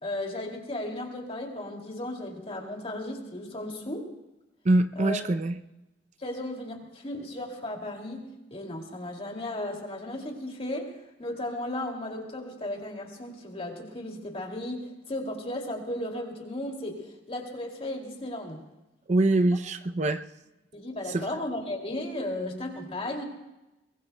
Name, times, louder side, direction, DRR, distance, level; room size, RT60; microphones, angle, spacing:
voice 1, 0.0-4.1 5.0-5.2 6.2-10.9 11.2-18.6 20.7-23.2, left 1 dB, 35° left, 2 dB, 2.6 m, -35 dB
voice 2, 4.6-5.6 19.1-20.2 21.1-21.3, right 2 dB, 40° right, 9 dB, 0.6 m, -24 dB
22.5 x 22.0 x 2.3 m, 1.0 s
head